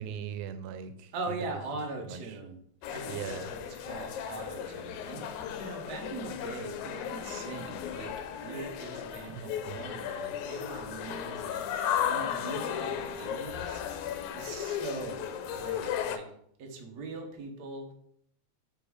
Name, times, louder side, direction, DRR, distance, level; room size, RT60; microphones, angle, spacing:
voice 1, 0.0-1.1 2.0-2.2 3.1-3.5 9.3-9.9, right 8 dB, 85° right, 11 dB, 2.0 m, -40 dB
voice 2, 1.1-2.6 2.9-8.1 8.4-14.0 14.3-16.2 16.6-17.9, right 3 dB, 65° right, 2 dB, 0.9 m, -41 dB
sound 1, 2.8-16.2, left 9 dB, 80° left, 1.9 m, -35 dB
5.4 x 4.5 x 4.7 m, 0.67 s
omnidirectional pair, 3.4 m